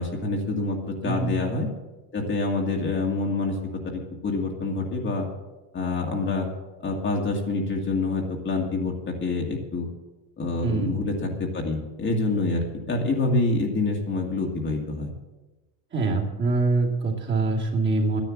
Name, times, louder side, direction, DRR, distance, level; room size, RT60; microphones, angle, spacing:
voice 1, 0.0-1.7 2.1-3.6 3.8-5.3 5.7-6.5 6.8-9.9 10.4-15.1, left 3 dB, 25° left, 0 dB, 2.0 m, -26 dB
voice 2, 1.0-1.4 10.6-11.0 15.9-18.2, right 3 dB, 25° right, -2 dB, 2.5 m, -24 dB
11.5 x 10.5 x 7.3 m, 1.1 s
cardioid pair, 150°, 44 cm